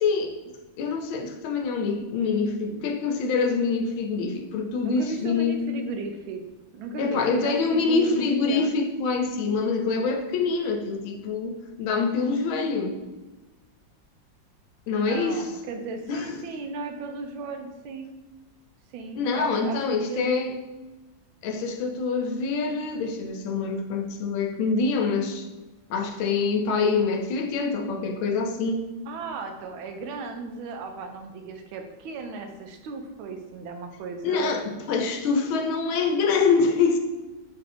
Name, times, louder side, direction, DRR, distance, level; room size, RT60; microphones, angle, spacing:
voice 1, 0.0-0.3 0.8-5.6 7.0-13.0 14.9-15.5 16.1-16.4 19.1-20.5 21.4-25.5 25.9-28.9 34.2-37.0, left 4 dB, 85° left, 4 dB, 1.4 m, -25 dB
voice 2, 4.8-6.4 6.7-8.2 8.5-8.7 15.0-18.1 18.9-20.3 29.1-34.5, right 3 dB, 85° right, 5 dB, 1.4 m, -36 dB
4.0 x 2.6 x 4.1 m, 1.1 s
omnidirectional pair, 2.2 m